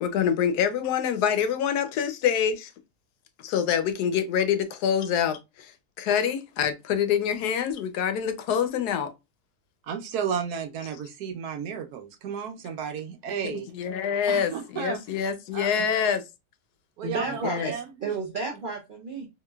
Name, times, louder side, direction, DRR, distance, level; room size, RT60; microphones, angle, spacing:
voice 1, 0.0-2.7 3.4-9.1 13.4-16.2 17.4-17.7, left 8 dB, 80° left, 1.1 m, -26 dB
voice 2, 9.8-13.7 14.3-15.0 15.5-15.9 17.0-18.2, right 7 dB, 75° right, 1.1 m, -33 dB
voice 3, 17.0-19.3, right 3 dB, 60° right, 0.5 m, -32 dB
3.7 x 2.9 x 2.2 m
omnidirectional pair, 1.7 m